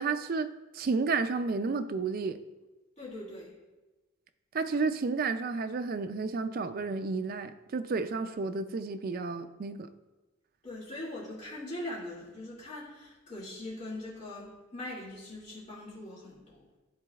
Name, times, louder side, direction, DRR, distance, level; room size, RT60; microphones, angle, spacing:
voice 1, 0.0-2.4 4.5-9.9, right 4 dB, 45° right, 9 dB, 0.3 m, -31 dB
voice 2, 3.0-3.6 10.6-16.7, left 1 dB, 35° left, -8 dB, 2.2 m, -41 dB
12.0 x 4.1 x 2.3 m, 1.1 s
head